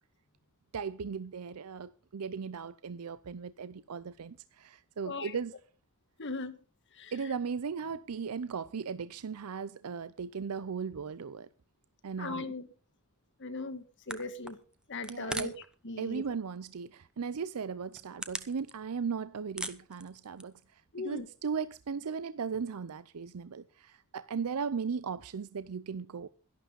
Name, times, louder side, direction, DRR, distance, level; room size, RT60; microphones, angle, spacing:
voice 1, 0.7-5.5 7.1-11.5 12.0-12.5 15.1-15.6 16.0-26.3, right 6 dB, 85° right, 0.5 m, -37 dB
voice 2, 5.0-5.4 6.2-6.5 6.9-7.1 12.2-12.7 13.4-14.6 14.9-15.5 15.8-16.2 20.9-21.3, left 3 dB, 55° left, 1.4 m, -38 dB
sound 1, 13.8-13.9 14.1-15.7 16.0-16.6 17.1-17.2 17.7-19.1 19.4-20.7, right 1 dB, 5° right, 0.9 m, -40 dB
12.0 x 11.5 x 5.3 m
head